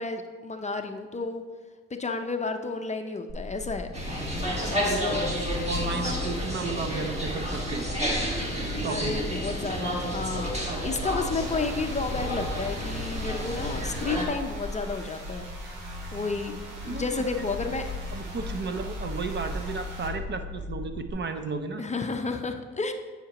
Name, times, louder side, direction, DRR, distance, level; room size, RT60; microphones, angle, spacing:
voice 1, 0.0-1.4 1.9-3.9 4.7-5.4 8.9-15.8 16.1-16.6 16.8-17.9 21.8-22.9, left 4 dB, 25° left, 5 dB, 0.5 m, -31 dB
sound 1, 3.3-21.1, left 2 dB, 70° right, 1.1 m, -37 dB
sound 2, 3.9-14.3, equal, 20° right, 1.6 m, -31 dB
voice 2, 4.6-5.3 5.7-7.9 8.8-9.3 16.9-17.3 18.1-21.8, right 4 dB, 35° right, 8 dB, 0.5 m, -33 dB
sound 3, 11.4-20.1, right 2 dB, 90° right, 1.3 m, -45 dB
8.5 x 5.7 x 2.9 m, 1.4 s
cardioid pair, 90°, 30 cm